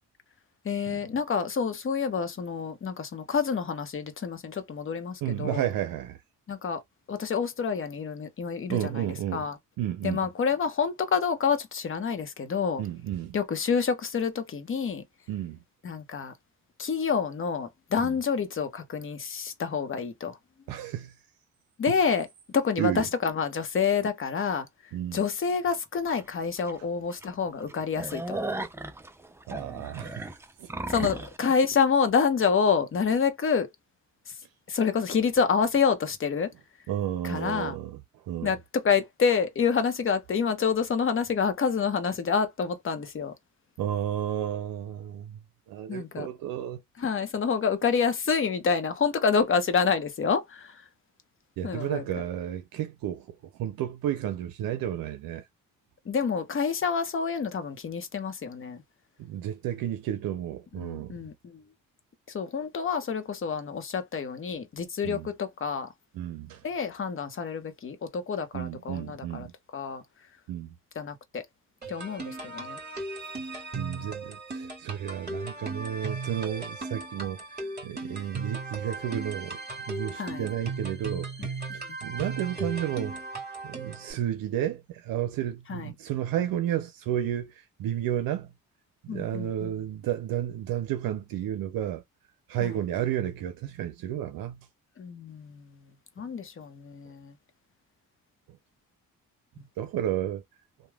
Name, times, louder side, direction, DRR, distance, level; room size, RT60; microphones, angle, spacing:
voice 1, 0.6-5.6 6.5-6.8 7.1-9.1 9.3-9.6 10.0-12.8 13.3-15.0 15.8-16.3 16.8-20.4 21.8-24.7 25.1-28.4 30.9-33.7 34.3-34.4 34.7-36.5 37.2-37.8 38.4-43.3 45.9-46.3 47.0-50.8 51.6-52.0 56.1-58.8 60.8-61.6 62.3-65.9 66.6-69.5 69.7-70.0 71.0-71.4 71.9-72.8 80.2-80.4 81.7-81.8 85.7-85.9 89.1-89.7 92.6-92.7 95.0-95.6 96.2-97.3, left 6 dB, 35° left, 0.8 m, -28 dB
voice 2, 5.2-6.2 8.7-9.5 9.8-10.2 12.8-13.4 15.3-15.6 18.0-18.2 20.7-21.1 21.9-22.0 22.8-23.0 24.9-25.2 29.5-30.7 36.9-38.6 43.8-45.4 45.7-46.8 51.6-55.5 59.2-61.2 65.0-65.3 66.1-66.6 68.5-69.5 70.5-70.7 73.7-79.6 79.9-83.2 83.6-88.5 89.0-92.0 92.5-94.6 99.8-100.4, right 11 dB, 75° right, 0.5 m, -32 dB
sound 1, 26.1-26.2 26.7-26.8 27.1-27.2 27.6-31.4, right 2 dB, 5° right, 0.4 m, -36 dB
sound 2, 71.8-84.1, right 3 dB, 30° right, 1.8 m, -37 dB
3.0 x 2.2 x 2.3 m
supercardioid pair, 65°, 35 cm